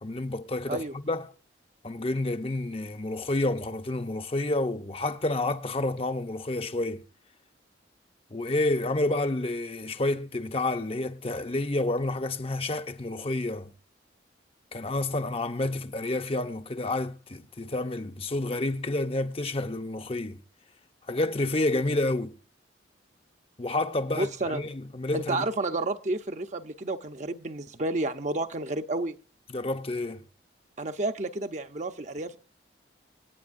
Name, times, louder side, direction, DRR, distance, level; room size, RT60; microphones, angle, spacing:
voice 1, 0.0-1.3 1.8-7.0 8.3-13.7 14.7-20.4 21.1-22.4 23.6-25.4 29.5-30.2, left 2 dB, 30° left, 0.7 m, -29 dB
voice 2, 24.1-24.6 25.1-29.2 30.8-32.4, right 2 dB, 40° right, 0.8 m, -31 dB
26.0 x 9.4 x 2.6 m
head